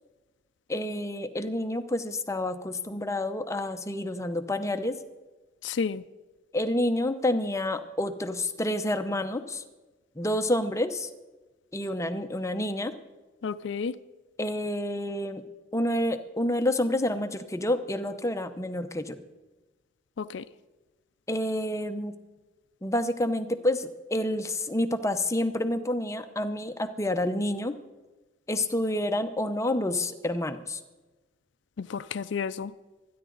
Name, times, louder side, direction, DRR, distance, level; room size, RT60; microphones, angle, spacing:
voice 1, 0.7-5.0 6.5-9.6 10.2-11.1 11.7-12.9 14.4-15.4 15.7-19.2 21.3-22.2 22.8-27.8 28.5-30.8, left 1 dB, 15° left, 9 dB, 0.7 m, -28 dB
voice 2, 5.6-6.0 13.4-14.0 20.2-20.5 31.8-32.7, left 5 dB, 70° left, 13 dB, 0.4 m, -31 dB
26.0 x 10.0 x 3.9 m, 1.2 s
head